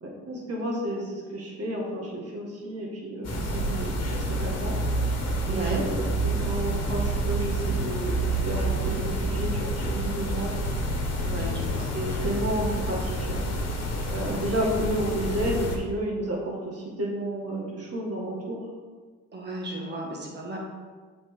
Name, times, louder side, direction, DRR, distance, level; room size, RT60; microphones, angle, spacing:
voice 1, 0.0-4.8 5.4-10.5 11.3-11.4 11.7-13.4 14.1-18.6, right 1 dB, 50° right, -2 dB, 1.9 m, -31 dB
sound 1, 3.2-15.8, right 1 dB, 55° left, 1.4 m, -28 dB
voice 2, 5.5-5.8 11.2-11.9 19.3-20.6, right 1 dB, 35° right, -2 dB, 1.8 m, -34 dB
7.8 x 4.4 x 3.8 m, 1.5 s
cardioid pair, 90°, 30 cm